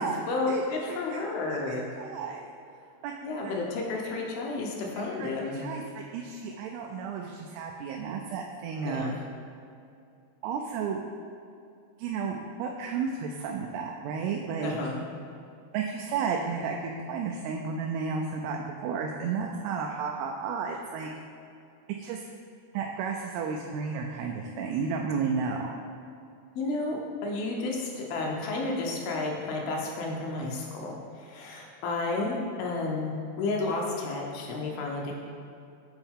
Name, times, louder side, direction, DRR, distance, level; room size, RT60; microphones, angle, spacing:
voice 1, 0.3-1.9 3.2-5.6 8.8-9.2 14.6-15.0 26.6-35.1, left 3 dB, 75° left, -1 dB, 2.5 m, -31 dB
voice 2, 1.7-2.4 3.0-3.1 3.4-3.6 5.2-9.1 10.4-11.0 12.0-14.8 15.7-21.1 22.0-22.2 22.7-25.8, right 5 dB, 90° right, 1 dB, 2.6 m, -32 dB
8.9 x 4.5 x 3.6 m, 2.6 s
omnidirectional pair, 4.7 m